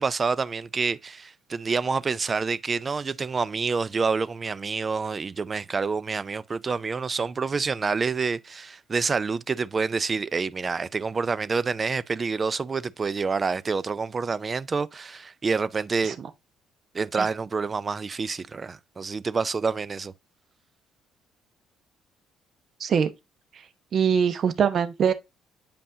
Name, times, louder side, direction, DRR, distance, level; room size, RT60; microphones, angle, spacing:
voice 1, 0.0-16.2 16.9-20.1, right 4 dB, 35° right, 0.4 m, -27 dB
voice 2, 22.8-23.1 23.9-25.1, right 7 dB, 50° right, 0.9 m, -22 dB
8.7 x 5.3 x 2.8 m
hypercardioid pair, 50°, 0 cm